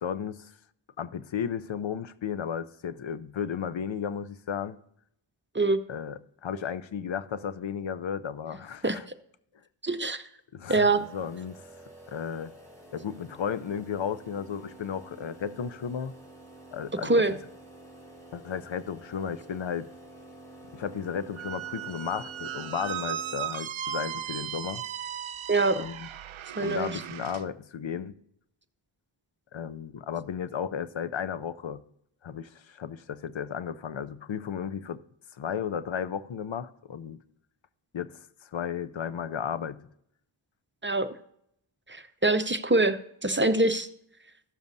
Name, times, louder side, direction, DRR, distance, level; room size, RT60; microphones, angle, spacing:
voice 1, 0.0-0.5 1.0-4.8 5.9-9.0 10.5-11.6 12.1-12.5 12.9-16.1 16.7-17.2 18.3-19.9 20.7-24.8 25.8-26.1 26.6-28.1 29.5-31.8 32.2-35.0 35.4-37.2 37.9-39.8, left 7 dB, 65° left, 0.6 m, -34 dB
voice 2, 9.8-10.2 10.7-11.0 17.0-17.3 25.5-25.8 26.6-26.9 40.8-41.1 41.9-43.9, right 2 dB, 25° right, 0.6 m, -24 dB
sound 1, 10.8-23.4, right 2 dB, 5° left, 3.0 m, -49 dB
Squeak, 21.4-27.4, right 10 dB, 70° right, 0.6 m, -37 dB
15.0 x 7.1 x 2.6 m
wide cardioid pair, 40°, 50 cm